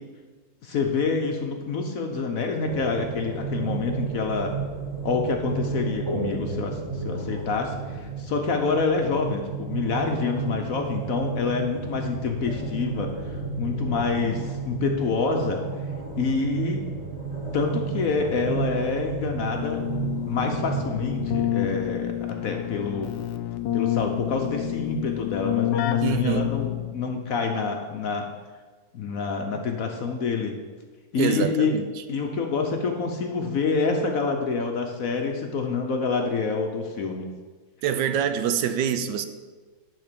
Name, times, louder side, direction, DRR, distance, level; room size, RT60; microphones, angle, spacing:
voice 1, 0.6-4.5 5.0-15.6 16.2-16.8 17.5-19.9 20.2-23.1 23.7-28.3 28.9-30.5 31.1-31.8 32.1-37.3, left 4 dB, 60° left, 3 dB, 1.0 m, -27 dB
sound 1, 2.6-21.4, right 5 dB, 15° right, 1.2 m, -32 dB
Keyboard (musical), 19.5-27.1, left 14 dB, 80° left, 1.3 m, -29 dB
voice 2, 26.0-26.5 31.2-31.8 37.8-39.3, right 8 dB, 75° right, 10 dB, 1.2 m, -25 dB
10.5 x 3.7 x 6.8 m, 1.4 s
omnidirectional pair, 2.0 m